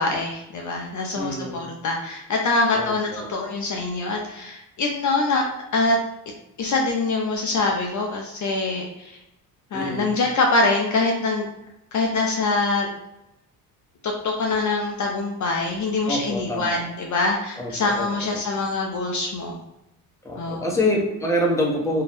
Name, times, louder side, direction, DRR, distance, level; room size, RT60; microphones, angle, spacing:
voice 1, 0.0-5.4 5.7-6.0 6.6-9.2 9.7-11.5 11.9-12.9 14.0-19.6 20.4-20.6, left 3 dB, 45° left, 0 dB, 0.6 m, -24 dB
voice 2, 1.1-1.6 2.7-3.3 9.7-10.1 16.1-16.8 17.6-18.4 20.2-22.0, left 1 dB, 5° left, -2 dB, 0.8 m, -26 dB
2.6 x 2.3 x 3.3 m, 0.86 s
cardioid pair, 85°, 41 cm